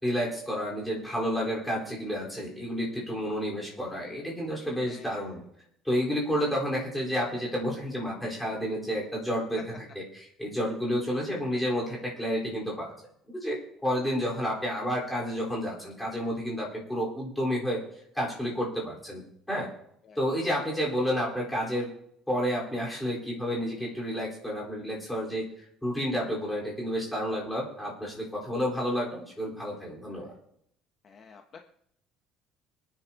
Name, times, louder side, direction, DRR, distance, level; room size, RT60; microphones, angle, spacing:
voice 1, 0.0-5.4 5.8-12.9 13.3-17.8 18.1-19.2 19.5-19.7 20.2-21.9 22.3-25.5 25.8-30.3, equal, 5° left, -4 dB, 4.3 m, -30 dB
voice 2, 4.8-5.3 20.0-20.2 30.1-30.3 31.0-31.6, left 5 dB, 30° left, 4 dB, 0.9 m, -52 dB
25.5 x 10.0 x 2.9 m, 0.72 s
cardioid pair, 165°, 0 cm